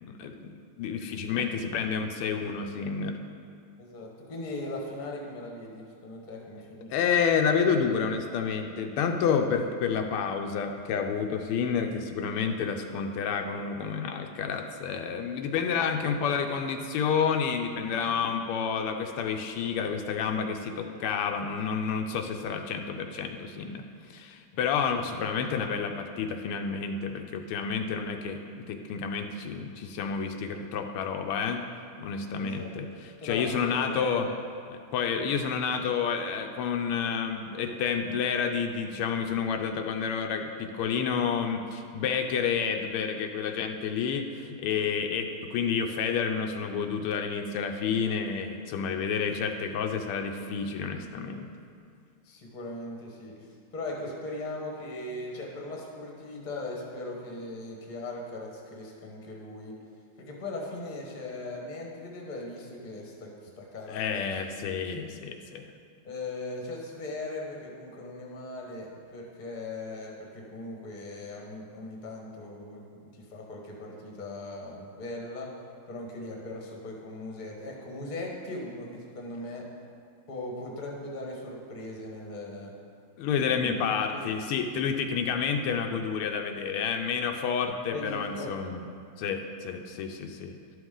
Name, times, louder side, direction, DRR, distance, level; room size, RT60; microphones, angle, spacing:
voice 1, 0.0-3.2 6.9-23.8 24.1-31.6 32.0-34.3 34.7-51.5 63.9-65.6 83.2-88.8 89.2-90.8, left 6 dB, 85° left, 5 dB, 1.5 m, -29 dB
voice 2, 3.8-6.9 24.5-24.6 32.4-32.7 33.2-34.2 52.2-59.8 60.2-63.3 63.6-64.4 64.9-65.0 66.0-75.6 75.9-79.7 80.3-82.7 83.5-83.8 84.1-84.3 84.7-84.9 87.9-88.5, left 2 dB, 30° left, -1 dB, 1.0 m, -39 dB
11.5 x 6.1 x 3.7 m, 2.3 s
omnidirectional pair, 2.4 m